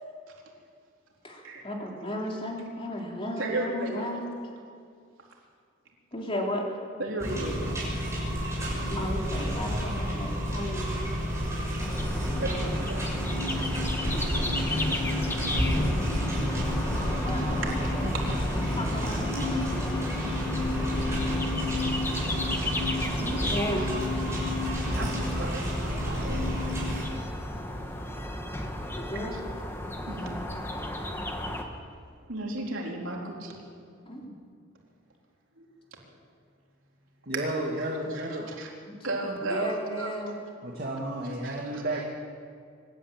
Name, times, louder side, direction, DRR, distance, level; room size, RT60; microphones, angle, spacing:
voice 1, 1.2-4.2 6.1-6.7 8.9-10.9 14.1-14.4 17.2-19.7 22.8-22.9 23.2-23.9 28.9-29.3 34.0-34.3 38.9-39.0 39.2-40.3, equal, 30° left, -1 dB, 3.3 m, -34 dB
voice 2, 3.4-4.1 7.0-7.8 12.4-13.1 15.3-15.8 16.9-17.0 17.6-17.9 23.8-24.0 24.9-26.4 29.1-29.4 30.1-30.4 32.3-33.6 35.6-35.7 37.3-38.7 39.0-40.1 41.4-41.8, right 2 dB, 85° right, -1 dB, 3.7 m, -35 dB
sound 1, 7.2-27.0, equal, 15° right, 6.6 m, -30 dB
sound 2, 11.8-31.6, left 1 dB, 10° left, 1.6 m, -35 dB
sound 3, 14.2-29.2, left 1 dB, 60° left, 4.2 m, -39 dB
voice 3, 37.3-38.5 40.6-42.0, right 1 dB, 50° right, -2 dB, 2.3 m, -32 dB
25.0 x 11.5 x 8.9 m, 2.2 s
head